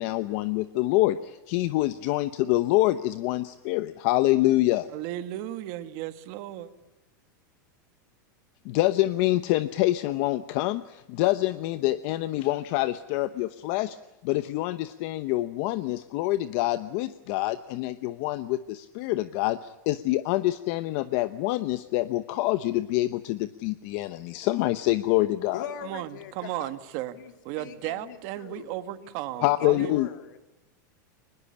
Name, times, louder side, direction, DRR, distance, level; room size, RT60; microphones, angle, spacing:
voice 1, 0.0-4.9 8.6-14.0 14.2-25.6 29.4-30.1, left 17 dB, 45° left, 13 dB, 0.9 m, -26 dB
voice 2, 4.9-6.7 25.8-27.2 27.4-30.1, right 14 dB, 45° right, 11 dB, 1.7 m, -35 dB
voice 3, 25.5-26.7 27.1-28.7 29.0-30.5, left 9 dB, 70° left, 8 dB, 2.8 m, -42 dB
23.0 x 21.0 x 9.9 m, 0.96 s
supercardioid pair, 160°, 10 cm